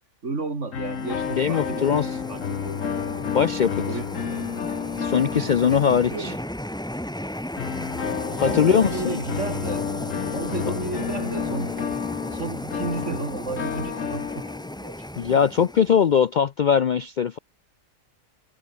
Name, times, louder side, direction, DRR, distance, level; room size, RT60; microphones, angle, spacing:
voice 1, 0.2-2.8 3.9-4.5 5.3-6.4 8.2-9.9 10.3-11.7 12.3-14.4 14.8-15.3, right 3 dB, 60° right, 3.3 m, -33 dB
sound 1, 0.7-6.5 7.6-15.0, left 7 dB, 70° left, 1.7 m, -31 dB
sound 2, 0.8-16.2, left 1 dB, 5° left, 0.8 m, -36 dB
voice 2, 1.4-2.1 3.3-3.8 5.0-6.3 8.4-9.2 15.2-17.4, left 7 dB, 55° left, 0.5 m, -21 dB
omnidirectional pair, 1.4 m